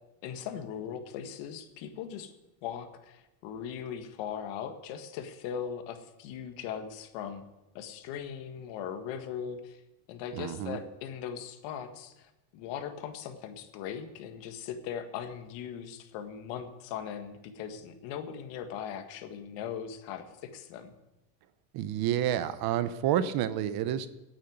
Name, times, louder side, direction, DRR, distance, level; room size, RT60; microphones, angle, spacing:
voice 1, 0.2-2.3 2.6-7.4 7.7-9.8 10.1-21.0, left 8 dB, 65° left, 7 dB, 1.8 m, -39 dB
voice 2, 10.3-10.8 21.7-24.1, right 11 dB, 50° right, 13 dB, 0.9 m, -29 dB
9.4 x 8.7 x 9.2 m, 0.96 s
cardioid pair, 150°, 47 cm